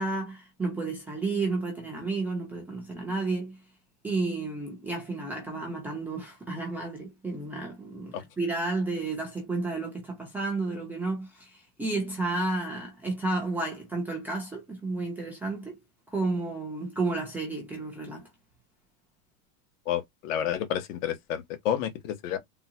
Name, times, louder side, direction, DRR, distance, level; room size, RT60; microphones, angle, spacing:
voice 1, 0.0-3.6 4.0-15.8 16.1-18.3, right 3 dB, 5° right, 0.4 m, -32 dB
voice 2, 19.9-22.4, left 10 dB, 65° left, 1.0 m, -30 dB
3.7 x 2.3 x 2.7 m
supercardioid pair, 170°, 41 cm